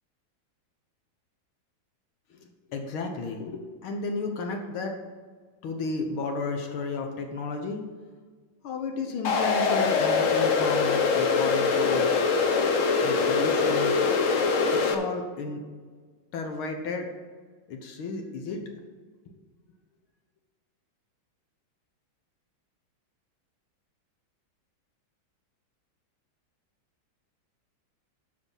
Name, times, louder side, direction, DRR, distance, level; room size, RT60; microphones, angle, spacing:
voice 1, 2.3-5.0 5.6-7.8 8.6-12.1 13.0-14.0 14.8-15.6 16.3-17.1 17.7-18.6, left 3 dB, 80° left, 3 dB, 1.9 m, -32 dB
sound 1, 9.2-14.9, left 4 dB, 55° left, 0.9 m, -23 dB
11.5 x 5.4 x 5.5 m, 1.5 s
omnidirectional pair, 2.3 m